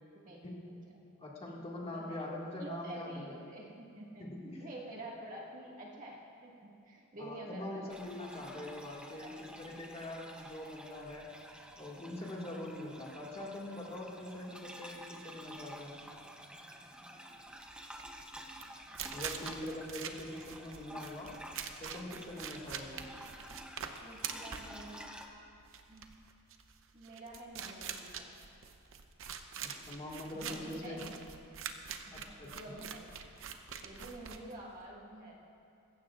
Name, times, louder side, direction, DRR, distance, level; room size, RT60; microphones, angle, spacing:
voice 1, 0.1-0.7 1.5-2.2 2.6-4.3 4.6-8.1 8.9-9.5 24.0-25.5 25.9-26.0 26.9-28.3 30.3-31.2 32.1-33.1 33.8-35.5, right 1 dB, 35° right, -3 dB, 1.9 m, -48 dB
voice 2, 1.2-3.3 4.2-4.6 7.2-11.3 11.8-16.0 19.1-21.3 21.8-23.1 29.6-31.0 32.1-32.7, left 1 dB, 25° left, -4 dB, 1.9 m, -43 dB
sound 1, 7.9-25.3, equal, 5° right, 0.7 m, -51 dB
sound 2, 17.5-34.9, right 7 dB, 60° right, 0.8 m, -45 dB
21.5 x 15.5 x 2.5 m, 2.5 s
head